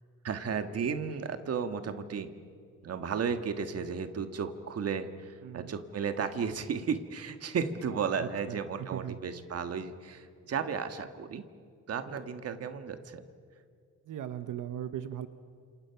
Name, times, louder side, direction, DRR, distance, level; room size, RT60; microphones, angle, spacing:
voice 1, 0.2-2.3 2.8-11.4 11.9-13.3, right 6 dB, 50° right, 8 dB, 1.5 m, -34 dB
voice 2, 5.4-5.7 8.2-9.2 14.1-15.3, right 10 dB, 80° right, 10 dB, 1.1 m, -38 dB
29.5 x 27.5 x 5.8 m, 2.2 s
wide cardioid pair, 165°, 31 cm